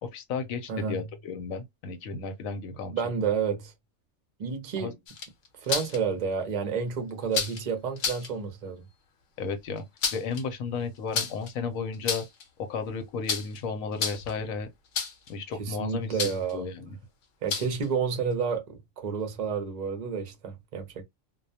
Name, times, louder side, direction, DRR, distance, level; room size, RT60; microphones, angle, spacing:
voice 1, 0.0-3.0 4.8-4.9 9.4-9.8 10.1-12.2 12.6-14.7 15.3-17.0, left 5 dB, 85° left, 1.0 m, -34 dB
voice 2, 0.7-1.0 2.9-3.7 4.4-4.9 5.6-8.8 15.6-16.7 17.4-21.0, right 6 dB, 45° right, 0.6 m, -30 dB
sound 1, 5.1-6.0 7.3-7.6 8.0-8.3 9.8-10.4 11.1-11.5 11.9-12.4 13.3-13.6 13.9-14.4 14.9-15.3 16.2-16.5 17.5-17.9, left 5 dB, 70° left, 0.9 m, -30 dB
2.3 x 2.1 x 2.6 m
omnidirectional pair, 1.4 m